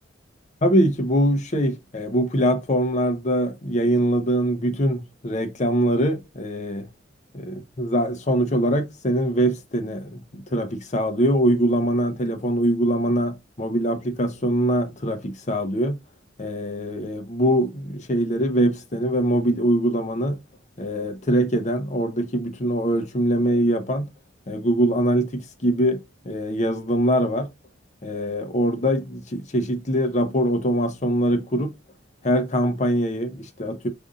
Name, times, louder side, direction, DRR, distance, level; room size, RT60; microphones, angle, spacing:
voice 1, 0.6-6.9 7.3-16.0 16.4-20.4 20.8-24.1 24.5-27.5 28.0-31.7 32.2-33.9, equal, 40° left, 0.8 m, -23 dB
5.3 x 2.6 x 3.6 m
head